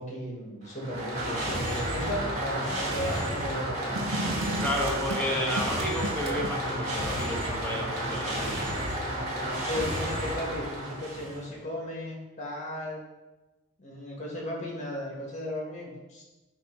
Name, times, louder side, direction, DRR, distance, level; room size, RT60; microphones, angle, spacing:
voice 1, 0.0-4.0 9.6-13.0 13.8-16.2, left 1 dB, 35° left, -2 dB, 1.7 m, -35 dB
sound 1, 0.6-11.5, right 1 dB, 35° right, 1.9 m, -31 dB
sound 2, 4.0-6.6, right 2 dB, 70° right, 0.6 m, -34 dB
voice 2, 4.6-8.7, left 1 dB, 5° left, -4 dB, 1.2 m, -32 dB
7.8 x 3.0 x 5.3 m, 1.1 s
head